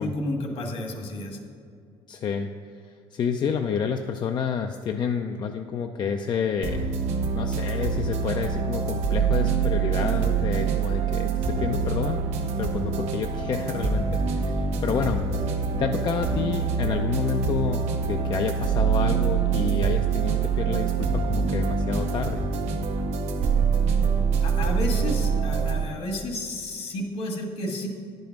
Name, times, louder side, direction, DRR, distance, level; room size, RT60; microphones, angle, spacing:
voice 1, 0.0-1.4 24.4-27.9, left 1 dB, 70° left, 2 dB, 1.7 m, -31 dB
voice 2, 2.1-2.5 2.8-6.9 7.3-12.2 12.6-15.2 15.8-22.5, left 6 dB, 45° left, 5 dB, 0.4 m, -29 dB
sound 1, 6.6-25.8, right 5 dB, 80° right, 0.9 m, -25 dB
10.0 x 5.3 x 5.9 m, 2.3 s
cardioid pair, 110°, 11 cm